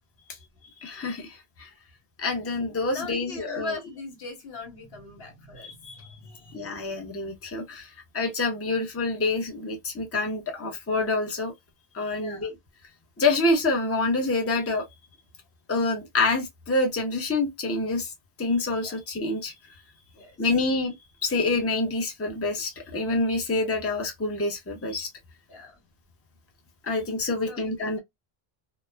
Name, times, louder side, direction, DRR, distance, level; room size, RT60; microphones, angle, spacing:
voice 1, 0.8-1.7 2.2-3.8 5.6-6.0 6.5-11.5 11.9-12.5 13.2-14.8 15.7-18.1 18.4-19.5 20.4-20.9 21.2-25.1 26.8-28.0, left 2 dB, 15° left, 0.7 m, -27 dB
voice 2, 2.9-6.7 12.2-12.5 18.8-19.0 20.1-20.4 24.9-25.0 25.5-25.8 26.9-27.0 27.5-28.0, left 3 dB, 70° left, 1.2 m, -41 dB
3.0 x 2.1 x 2.2 m
omnidirectional pair, 1.1 m